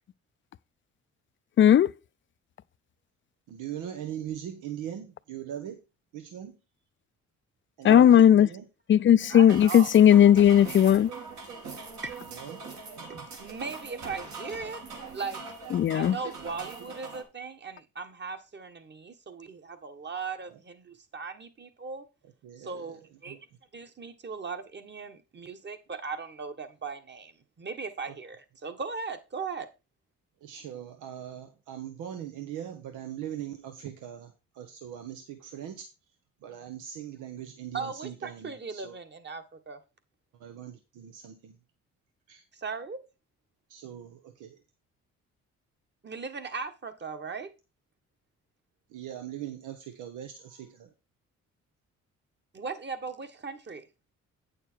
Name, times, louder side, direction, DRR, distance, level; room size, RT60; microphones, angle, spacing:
voice 1, 1.6-1.9 7.8-8.5 8.9-11.1 15.7-16.1, left 10 dB, 40° left, 0.5 m, -17 dB
voice 2, 3.5-5.8 6.1-6.6 7.8-8.6 12.2-12.6 13.0-13.3 22.4-22.9 23.3-23.4 28.1-28.2 30.4-35.9 36.4-39.0 40.4-41.5 42.3-42.4 43.7-44.6 48.9-50.9, right 10 dB, 90° right, 1.1 m, -40 dB
sound 1, 9.2-17.2, right 4 dB, 70° right, 3.0 m, -42 dB
voice 3, 9.3-9.9 12.0-12.2 13.1-14.8 15.1-15.4 15.9-22.0 22.6-23.4 23.7-29.7 37.7-39.8 42.5-43.0 46.0-47.5 52.5-53.8, right 4 dB, 35° right, 1.5 m, -38 dB
9.0 x 6.6 x 4.6 m
cardioid pair, 90°, 30 cm